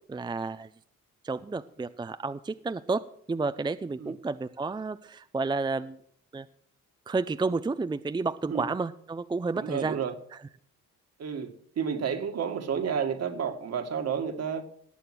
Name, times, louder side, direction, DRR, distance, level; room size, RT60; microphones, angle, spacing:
voice 1, 0.1-0.7 1.2-6.0 6.3-6.5 7.1-10.0, right 3 dB, 15° right, 0.5 m, -31 dB
voice 2, 9.5-10.1 11.2-14.6, right 7 dB, 55° right, 2.0 m, -31 dB
18.5 x 7.1 x 6.2 m
cardioid pair, 90°, 30 cm